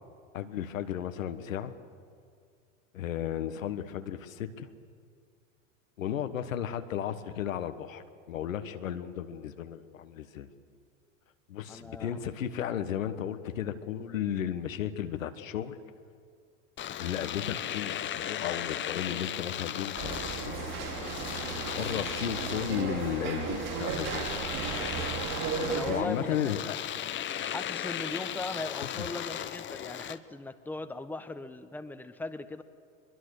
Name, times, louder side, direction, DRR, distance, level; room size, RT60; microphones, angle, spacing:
voice 1, 0.3-1.7 2.9-4.7 6.0-10.5 11.5-15.8 17.0-20.6 21.6-24.5 25.9-26.8, left 10 dB, 80° left, 9 dB, 1.5 m, -34 dB
voice 2, 11.7-12.2 25.6-26.7 27.5-32.6, left 2 dB, 5° left, 10 dB, 1.1 m, -39 dB
Domestic sounds home sounds, 16.8-30.2, left 10 dB, 30° left, 0.9 m, -37 dB
sound 1, 19.9-26.0, right 6 dB, 55° right, 4.8 m, -35 dB
22.5 x 22.0 x 6.6 m, 2.2 s
hypercardioid pair, 90°, 39 cm